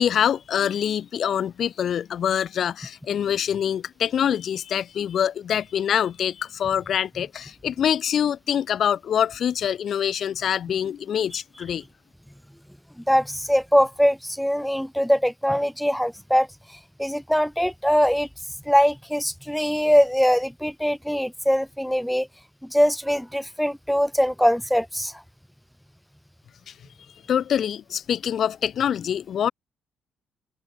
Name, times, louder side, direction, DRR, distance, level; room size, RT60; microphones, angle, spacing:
voice 1, 0.0-11.8 27.3-29.5, left 9 dB, 60° left, 1.4 m, -25 dB
voice 2, 13.1-16.5 17.0-18.3 18.7-22.3 22.7-25.2, equal, ahead, 0.4 m, -22 dB
cardioid pair, 90°, 0 cm